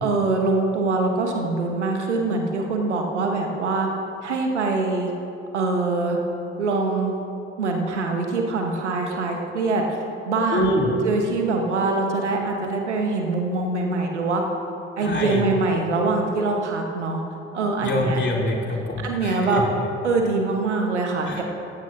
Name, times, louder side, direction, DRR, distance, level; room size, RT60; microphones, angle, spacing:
voice 1, 0.0-3.9 4.2-5.1 5.5-6.2 6.6-7.1 7.6-10.0 10.2-10.7 11.0-14.4 15.0-17.2 17.5-18.2 19.0-19.6 20.0-21.4, right 3 dB, 80° right, 2 dB, 1.2 m, -23 dB
voice 2, 10.5-10.9 15.0-15.4 17.8-19.6 21.3-21.4, left 1 dB, 30° left, -2 dB, 3.1 m, -25 dB
16.5 x 15.5 x 2.7 m, 2.7 s
figure-of-eight pair, 45°, 34 cm